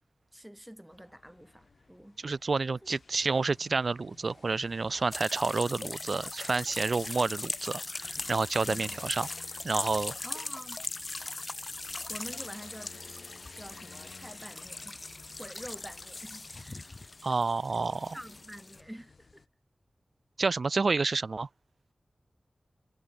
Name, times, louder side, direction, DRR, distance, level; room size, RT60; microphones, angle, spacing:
voice 1, 0.3-2.2 2.7-2.9 8.6-9.0 10.2-10.8 12.1-15.0 15.4-17.0 18.1-19.5, equal, 10° right, 1.9 m, -47 dB
sound 1, 0.9-19.5, left 4 dB, 70° left, 2.0 m, -55 dB
voice 2, 2.2-9.3 9.6-10.1 17.2-18.2 20.4-21.5, right 4 dB, 65° right, 0.3 m, -29 dB
sound 2, 5.1-18.8, left 2 dB, 45° left, 0.8 m, -40 dB
wide cardioid pair, 55°, 0 cm